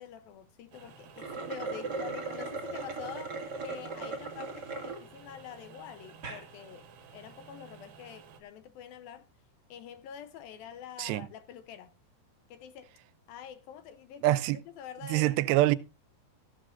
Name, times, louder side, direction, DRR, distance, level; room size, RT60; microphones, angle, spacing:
voice 1, 0.0-9.3 9.7-11.9 12.5-12.9 13.3-14.2 14.5-15.4, left 9 dB, 75° left, 2.3 m, -46 dB
sound 1, 0.7-8.4, right 6 dB, 65° right, 3.0 m, -53 dB
sound 2, 1.1-5.0 5.5-5.6 6.1-6.4, right 3 dB, 30° right, 2.3 m, -38 dB
voice 2, 14.2-14.6 15.1-15.8, right 15 dB, 90° right, 2.9 m, -25 dB
16.0 x 12.5 x 2.5 m
omnidirectional pair, 4.8 m